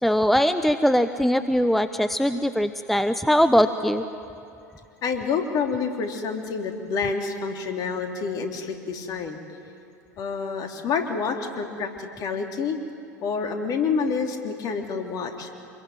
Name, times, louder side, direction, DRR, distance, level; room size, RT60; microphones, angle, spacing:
voice 1, 0.0-4.0, equal, ahead, 10 dB, 0.9 m, -21 dB
voice 2, 5.0-9.4 10.2-12.8 13.2-15.5, left 5 dB, 45° left, 4 dB, 3.5 m, -28 dB
26.5 x 22.0 x 9.4 m, 2.7 s
figure-of-eight pair, 80°, 9 cm